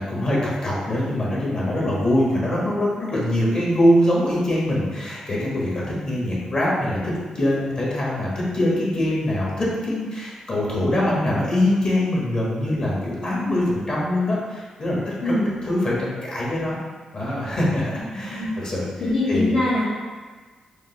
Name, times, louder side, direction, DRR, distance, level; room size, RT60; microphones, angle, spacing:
voice 1, 0.0-15.1 15.6-16.8 17.1-18.9 19.3-19.5, left 1 dB, 50° left, -5 dB, 1.4 m, -23 dB
voice 2, 2.3-2.7 13.4-13.8 15.2-15.6 18.1-18.6 19.0-19.9, left 1 dB, 65° left, -11 dB, 1.1 m, -24 dB
5.2 x 2.1 x 3.8 m, 1.4 s
cardioid pair, 60°, 2 cm